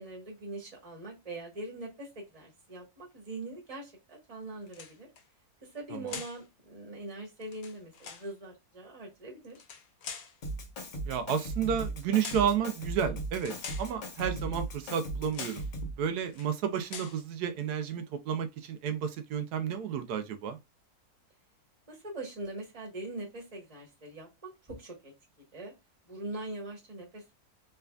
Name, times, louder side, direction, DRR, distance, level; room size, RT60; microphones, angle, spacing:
voice 1, 0.0-5.1 5.6-9.6 21.9-25.1 25.5-25.7 26.1-27.3, right 2 dB, 25° right, 1.2 m, -42 dB
sound 1, 4.7-5.2 6.1-6.4 7.4-8.3 9.5-10.4 11.3-11.5 12.2-12.6 13.4-13.9 14.8-15.1 15.3-15.7 16.3-16.5 16.9-17.2, left 6 dB, 90° left, 1.3 m, -44 dB
Drum kit, 10.4-16.0, right 2 dB, 40° left, 0.7 m, -38 dB
voice 2, 11.1-15.6 16.0-20.6, right 8 dB, 85° right, 1.2 m, -31 dB
3.4 x 3.3 x 2.2 m
omnidirectional pair, 1.7 m